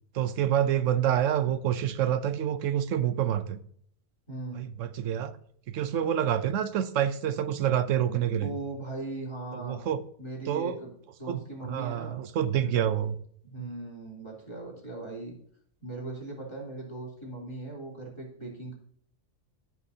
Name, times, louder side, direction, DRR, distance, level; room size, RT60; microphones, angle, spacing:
voice 1, 0.1-3.6 4.5-5.3 5.7-8.5 9.5-10.0 10.5-10.8 11.3-13.2 13.6-13.7, right 10 dB, 80° right, 1.1 m, -27 dB
voice 2, 4.3-4.6 8.4-9.8 10.2-10.9 11.2-12.2 12.5-12.8 13.4-15.3 15.8-18.7, right 2 dB, 20° left, 3.3 m, -39 dB
14.5 x 5.8 x 2.8 m
omnidirectional pair, 1.3 m